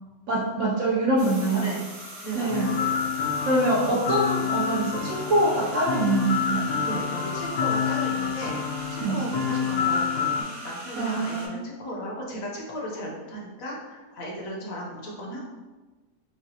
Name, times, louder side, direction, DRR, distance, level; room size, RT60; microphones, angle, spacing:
voice 1, 0.3-1.7 2.3-2.9 3.4-6.7 9.0-9.2 11.0-11.6, right 2 dB, 70° right, -4 dB, 0.7 m, -24 dB
sound 1, 1.2-11.5, right 1 dB, 85° right, 1.7 m, -40 dB
voice 2, 2.2-2.8 6.8-8.5 8.9-15.4, equal, 65° left, -2 dB, 1.1 m, -35 dB
sound 2, 2.5-10.4, left 7 dB, 85° left, 1.3 m, -28 dB
5.7 x 2.3 x 2.7 m, 1.2 s
omnidirectional pair, 1.7 m